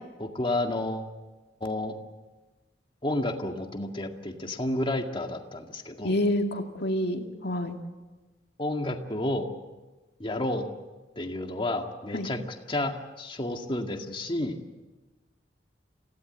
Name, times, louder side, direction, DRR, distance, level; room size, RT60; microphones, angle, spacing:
voice 1, 0.2-1.1 1.6-2.0 3.0-6.1 8.6-9.5 10.2-10.6 11.2-12.4 12.7-14.6, left 1 dB, 30° left, 4 dB, 2.0 m, -30 dB
voice 2, 6.0-7.8 12.1-12.3, left 1 dB, 60° left, 4 dB, 2.3 m, -28 dB
27.0 x 16.5 x 8.0 m, 1.2 s
head